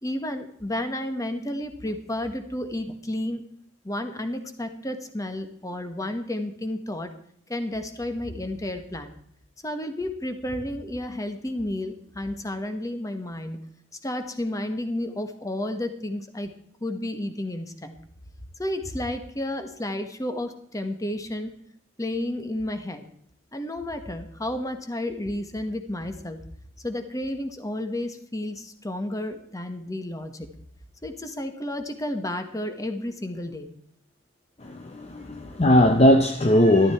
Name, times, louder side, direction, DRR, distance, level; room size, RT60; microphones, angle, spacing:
voice 1, 0.0-3.4 3.8-7.1 7.5-9.1 9.6-13.6 14.0-16.5 16.8-18.0 18.6-21.5 22.0-23.0 23.5-26.4 26.8-30.5 31.0-33.7, left 1 dB, 15° left, 1.3 m, -31 dB
voice 2, 34.6-36.9, left 1 dB, 35° left, 0.7 m, -19 dB
13.5 x 12.5 x 4.4 m
head